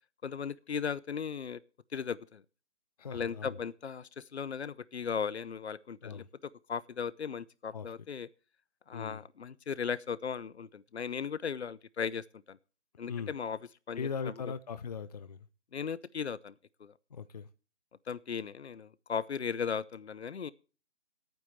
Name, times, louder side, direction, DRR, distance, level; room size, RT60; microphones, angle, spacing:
voice 1, 0.2-1.6 1.9-2.4 3.1-8.3 8.9-12.6 13.0-13.6 13.9-14.5 15.7-16.5 16.8-16.9 18.1-20.5, left 6 dB, 65° left, 0.8 m, -37 dB
voice 2, 3.0-3.6 6.0-6.3 7.7-7.9 8.9-9.2 13.1-13.3 14.0-15.5 17.1-17.5, left 6 dB, 35° left, 0.6 m, -39 dB
10.5 x 9.3 x 7.7 m
figure-of-eight pair, 155°, 35 cm